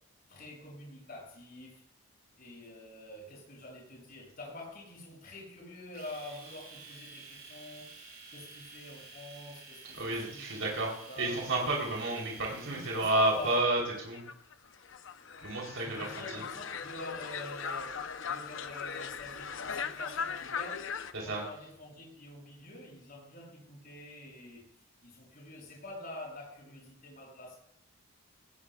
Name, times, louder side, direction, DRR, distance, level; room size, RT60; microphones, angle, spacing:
voice 1, 0.3-1.8 2.4-10.6 11.0-11.4 12.7-13.7 15.7-24.6 25.0-27.6, left 1 dB, 45° left, -2 dB, 6.8 m, -47 dB
Domestic sounds home sounds, 5.9-13.7, right 3 dB, 45° right, 6.2 m, -51 dB
voice 2, 9.9-10.9 11.2-14.2 15.4-16.4 21.1-21.4, right 2 dB, 70° right, -2 dB, 3.6 m, -31 dB
sound 1, 13.7-21.1, left 6 dB, 65° left, 0.7 m, -39 dB
18.5 x 16.5 x 2.4 m, 0.66 s
head